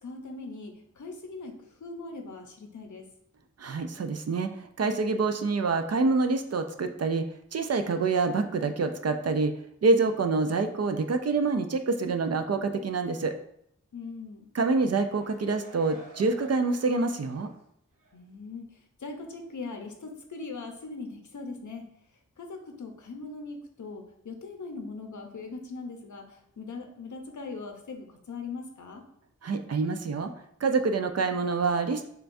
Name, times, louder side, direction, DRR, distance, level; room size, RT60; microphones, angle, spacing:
voice 1, 0.0-3.1 13.9-14.5 18.1-21.9 22.4-29.0, left 3 dB, 70° left, 4 dB, 0.7 m, -40 dB
voice 2, 3.6-7.2 7.5-9.5 9.8-13.3 14.5-17.5 29.4-30.3 30.6-32.1, right 3 dB, 55° right, 7 dB, 0.4 m, -26 dB
sound 1, 14.9-17.6 18.0-18.1, right 1 dB, 90° right, 0.8 m, -51 dB
6.7 x 2.3 x 2.6 m, 0.72 s
wide cardioid pair, 75°, 31 cm